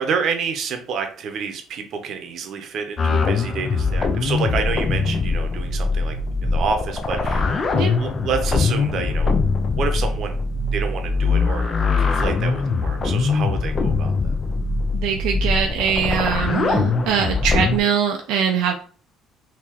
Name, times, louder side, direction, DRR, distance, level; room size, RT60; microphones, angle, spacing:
voice 1, 0.0-6.2 6.4-7.5 7.9-9.4 9.7-10.4 10.7-14.4, right 5 dB, 55° right, 6 dB, 0.7 m, -28 dB
sound 1, 3.0-17.8, left 4 dB, 35° left, 0.5 m, -22 dB
voice 2, 14.9-18.7, right 7 dB, 80° right, 3 dB, 0.3 m, -22 dB
3.6 x 2.8 x 2.9 m, 0.43 s
cardioid pair, 110°, 0 cm